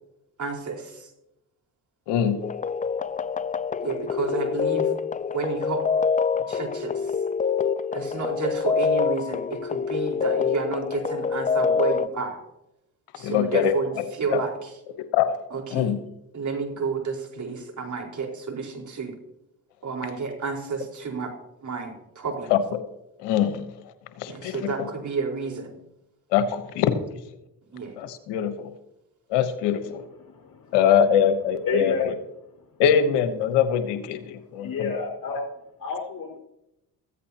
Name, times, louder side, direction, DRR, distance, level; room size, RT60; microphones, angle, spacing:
voice 1, 0.4-1.1 3.8-4.9 5.3-5.8 6.5-7.1 7.9-12.4 13.1-14.7 15.5-15.9 16.3-19.1 19.8-21.3 21.6-22.5 24.3-25.7 27.7-27.9 32.8-33.2, right 4 dB, 45° right, 1 dB, 4.5 m, -31 dB
voice 2, 2.1-2.4 13.2-14.0 14.3-14.4 15.1-15.4 15.7-16.0 22.5-22.6 23.2-23.7 24.2-24.9 26.3-27.2 28.0-28.7 29.3-30.0 30.7-32.1 32.8-34.9, left 8 dB, 85° left, 9 dB, 1.1 m, -23 dB
sound 1, 2.4-12.1, left 6 dB, 20° left, 0.4 m, -26 dB
voice 3, 30.2-30.8 31.6-32.1 34.6-35.5 35.8-36.4, left 5 dB, 55° left, 2 dB, 4.9 m, -29 dB
15.0 x 14.5 x 2.9 m, 0.86 s
supercardioid pair, 60°, 40 cm